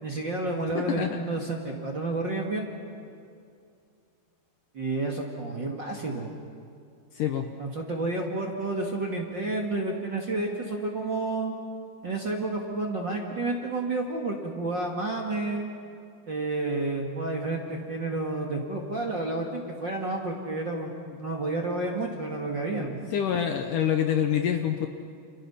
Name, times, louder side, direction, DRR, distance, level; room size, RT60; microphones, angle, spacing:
voice 1, 0.0-2.7 4.7-6.3 7.6-11.5 12.0-15.7 16.3-20.9 21.2-23.0, right 2 dB, 35° right, 0 dB, 2.0 m, -30 dB
voice 2, 0.7-1.2 7.1-7.5 23.1-24.9, left 9 dB, 70° left, 5 dB, 2.2 m, -26 dB
29.5 x 29.5 x 5.8 m, 2.4 s
omnidirectional pair, 4.7 m